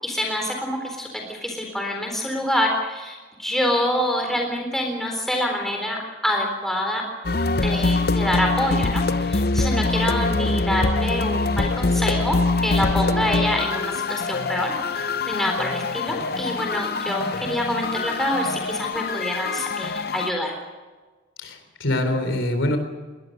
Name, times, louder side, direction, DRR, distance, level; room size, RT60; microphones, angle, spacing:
voice 1, 0.0-7.0 7.6-20.5, left 1 dB, ahead, 1 dB, 3.9 m, -26 dB
sound 1, 7.2-20.3, left 3 dB, 55° left, 0.7 m, -24 dB
voice 2, 21.4-22.8, left 1 dB, 90° left, 7 dB, 3.9 m, -24 dB
22.0 x 20.0 x 6.6 m, 1.3 s
head